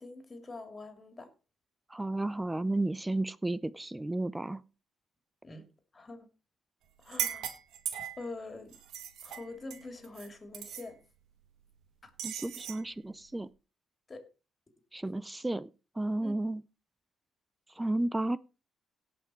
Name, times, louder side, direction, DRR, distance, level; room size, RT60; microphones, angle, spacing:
voice 1, 0.0-1.3 5.4-5.7 5.9-6.3 7.0-7.6 8.2-8.8 9.2-11.0 12.0-12.1 14.1-14.3 16.2-16.3, left 2 dB, 30° left, 2.9 m, -45 dB
voice 2, 1.9-4.6 12.2-13.5 14.9-15.7 16.0-16.6 17.8-18.4, right 2 dB, 10° right, 0.5 m, -32 dB
sound 1, 7.0-8.3 8.7-10.3 10.5-10.9 12.2-12.8, right 9 dB, 80° right, 1.8 m, -38 dB
17.5 x 5.9 x 4.5 m
cardioid pair, 90°, 0 cm